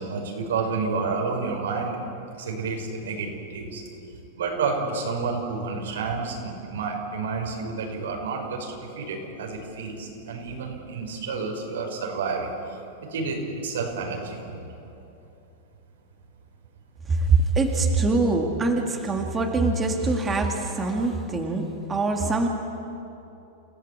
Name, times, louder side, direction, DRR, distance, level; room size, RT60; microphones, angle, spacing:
voice 1, 0.0-2.0 2.4-3.8 4.4-12.5 13.0-14.6, right 4 dB, 90° right, 1 dB, 5.8 m, -30 dB
voice 2, 17.1-22.5, right 3 dB, 15° right, 2 dB, 2.0 m, -23 dB
29.0 x 16.0 x 8.6 m, 2.9 s
supercardioid pair, 155°, 0 cm